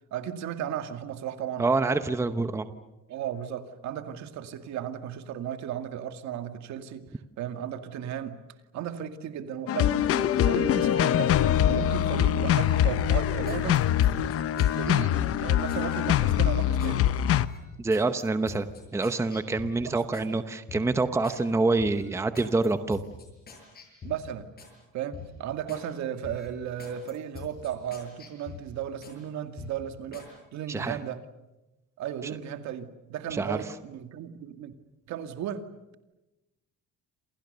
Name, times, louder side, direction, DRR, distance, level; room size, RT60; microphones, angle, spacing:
voice 1, 0.1-1.7 3.1-7.1 7.4-8.4 8.7-13.9 14.6-17.0 19.9-20.0 24.0-24.5 24.9-31.3 32.0-34.7 35.1-35.7, right 9 dB, 65° right, 8 dB, 2.3 m, -35 dB
voice 2, 1.6-2.7 17.8-18.7 18.9-23.0 30.7-31.0 33.3-33.7, right 3 dB, 10° right, 10 dB, 0.9 m, -26 dB
sound 1, 9.7-17.5, left 11 dB, 50° left, 0.9 m, -24 dB
sound 2, 12.9-15.9 16.2-17.0 17.3-20.3 20.7-21.4 21.8-24.7 25.1-25.9 26.2-29.2 29.6-30.3 30.7-30.9, left 5 dB, 30° left, 8.0 m, -46 dB
29.0 x 28.0 x 6.8 m, 1.0 s
cardioid pair, 170°, 30 cm